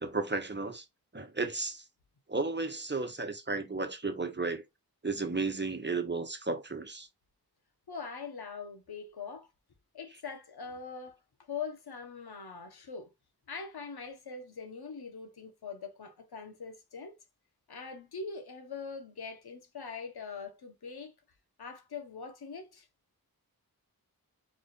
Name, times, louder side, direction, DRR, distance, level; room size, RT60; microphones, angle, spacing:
voice 1, 0.0-0.8 1.1-1.8 2.3-4.6 5.0-7.1, right 3 dB, 30° right, 1.1 m, -33 dB
voice 2, 7.9-9.5 9.9-13.1 13.5-17.2 17.7-21.1 21.6-22.9, left 5 dB, 90° left, 1.1 m, -42 dB
4.8 x 2.5 x 4.0 m
wide cardioid pair, 50°, 37 cm